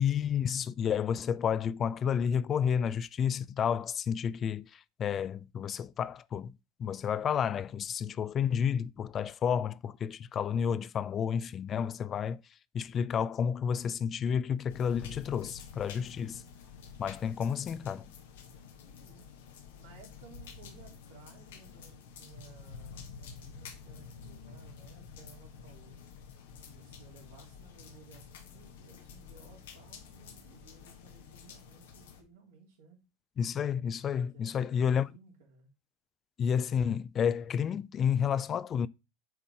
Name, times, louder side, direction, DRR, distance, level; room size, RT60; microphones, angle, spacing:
voice 1, 0.0-6.5 6.8-12.4 12.7-16.4 17.0-18.1 33.4-35.1 36.4-38.9, left 7 dB, 35° left, 0.4 m, -30 dB
sound 1, 14.7-32.2, left 6 dB, 80° left, 1.2 m, -49 dB
voice 2, 18.5-19.3 19.8-26.0 26.7-33.0 34.3-34.8 35.1-35.7, right 5 dB, 80° right, 3.1 m, -58 dB
7.6 x 3.8 x 4.3 m
hypercardioid pair, 90°, 0 cm